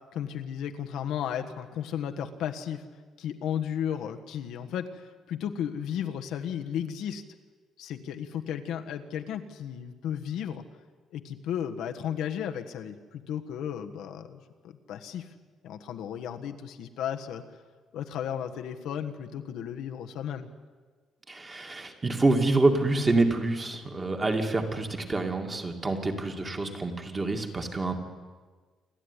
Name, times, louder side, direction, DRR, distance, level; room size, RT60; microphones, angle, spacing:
voice 1, 0.1-2.8 3.2-7.2 7.8-10.6 11.1-15.3 15.6-17.4 17.9-20.5, left 9 dB, 75° left, 5 dB, 1.5 m, -34 dB
voice 2, 21.3-27.9, right 2 dB, 20° right, 3 dB, 2.3 m, -27 dB
28.0 x 12.0 x 9.9 m, 1.4 s
cardioid pair, 150°, 0 cm